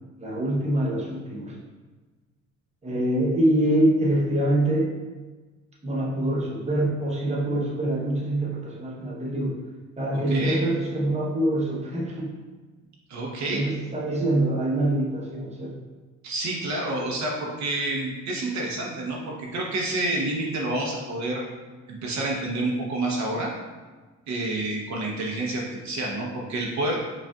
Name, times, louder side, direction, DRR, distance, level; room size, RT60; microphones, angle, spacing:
voice 1, 0.2-1.6 2.8-4.9 5.8-9.6 10.0-12.4 13.4-15.7, right 1 dB, 20° right, -4 dB, 0.9 m, -25 dB
voice 2, 13.1-13.6 16.2-21.4 21.9-23.5 24.3-26.9, right 2 dB, 65° right, -2 dB, 0.8 m, -28 dB
5.0 x 2.5 x 2.3 m, 1.3 s
cardioid pair, 90°, 30 cm